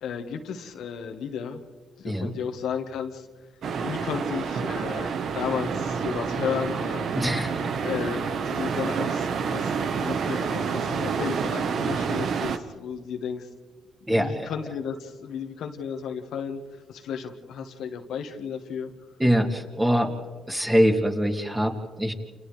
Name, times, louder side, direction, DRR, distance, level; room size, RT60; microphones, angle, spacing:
voice 1, 0.0-1.6 2.0-3.3 3.8-7.4 7.8-13.5 14.2-18.9, left 7 dB, 75° left, 4 dB, 1.6 m, -33 dB
sound 1, 3.6-12.6, right 6 dB, 65° right, 1.2 m, -28 dB
voice 2, 7.1-7.5 14.1-14.5 19.2-20.1 20.5-22.1, equal, 10° right, 1 dB, 2.9 m, -23 dB
29.5 x 29.5 x 3.3 m, 1.4 s
cardioid pair, 90°, 0 cm